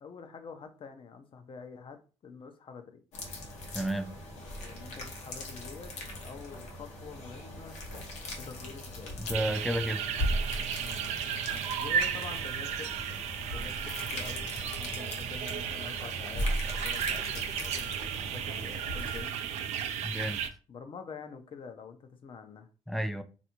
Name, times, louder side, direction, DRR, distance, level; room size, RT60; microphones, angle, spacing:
voice 1, 0.0-3.0 4.6-5.9 6.2-7.8 8.3-9.1 10.8-11.1 11.7-13.2 13.5-14.5 14.8-19.4 20.7-22.7, left 6 dB, 50° left, 0.6 m, -47 dB
sound 1, 3.1-19.2, equal, 85° left, 0.8 m, -38 dB
voice 2, 3.7-4.1 9.2-10.1 20.0-20.4 22.9-23.2, equal, ahead, 0.4 m, -31 dB
sound 2, 9.3-20.5, right 8 dB, 80° right, 0.4 m, -34 dB
3.3 x 2.5 x 2.9 m
cardioid pair, 75°, 11 cm